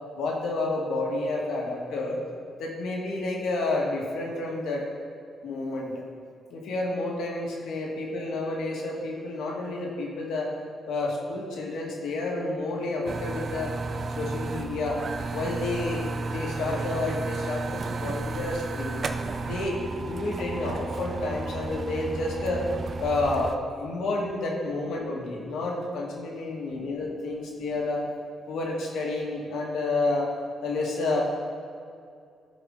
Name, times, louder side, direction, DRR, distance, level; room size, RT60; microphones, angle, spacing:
voice 1, 0.2-2.2 2.6-4.8 5.4-5.9 6.5-10.5 10.9-13.7 14.2-15.0 15.3-19.0 19.4-22.6 23.0-28.0 28.5-30.3 30.6-31.2, left 2 dB, 85° left, -2 dB, 1.7 m, -30 dB
sound 1, 13.1-23.6, right 3 dB, 45° right, 0.5 m, -33 dB
14.5 x 4.9 x 3.8 m, 2.4 s
cardioid pair, 130°, 0 cm